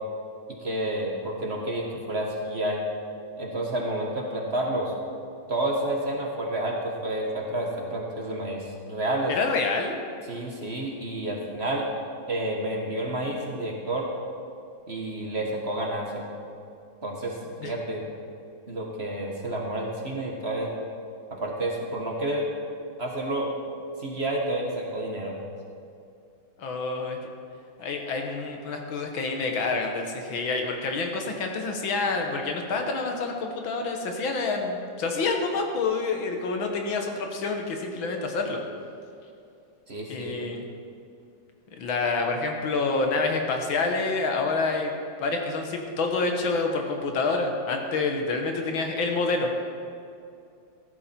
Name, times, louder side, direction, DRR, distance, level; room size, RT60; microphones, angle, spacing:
voice 1, 0.6-2.8 3.4-4.9 5.5-9.3 10.3-11.9 12.3-14.1 14.9-16.2 17.0-18.0 18.7-20.7 21.3-22.5 23.0-23.5 24.0-25.3 39.9-40.4, right 1 dB, 35° right, -1 dB, 1.5 m, -30 dB
voice 2, 9.3-9.9 17.6-17.7 26.6-27.2 27.8-38.6 40.1-40.7 41.8-44.9 45.2-49.5, left 3 dB, 80° left, 3 dB, 2.1 m, -27 dB
14.5 x 12.0 x 4.4 m, 2.5 s
omnidirectional pair, 2.2 m